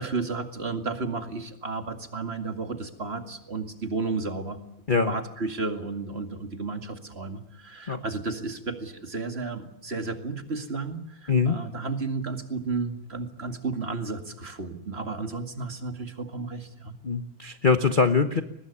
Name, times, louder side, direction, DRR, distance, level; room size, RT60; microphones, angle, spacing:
voice 1, 0.0-4.6 5.1-16.9, right 3 dB, 30° right, 6 dB, 2.4 m, -33 dB
voice 2, 17.0-18.4, left 4 dB, 35° left, 8 dB, 1.0 m, -23 dB
23.0 x 21.0 x 9.9 m, 0.75 s
omnidirectional pair, 2.1 m